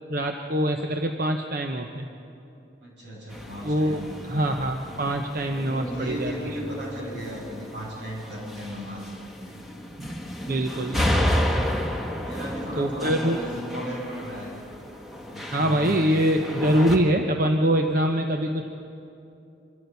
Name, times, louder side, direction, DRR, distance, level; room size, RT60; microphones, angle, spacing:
voice 1, 0.1-2.1 3.6-4.0 4.3-6.3 10.5-11.0 12.8-13.4 15.5-18.8, right 1 dB, 50° right, 4 dB, 0.8 m, -24 dB
voice 2, 2.8-4.7 5.7-9.6 10.0-10.4 12.1-14.5 15.1-16.2, equal, 80° right, -3 dB, 6.7 m, -36 dB
sound 1, 3.3-17.0, equal, ahead, 1.5 m, -32 dB
26.0 x 14.0 x 8.2 m, 2.8 s
head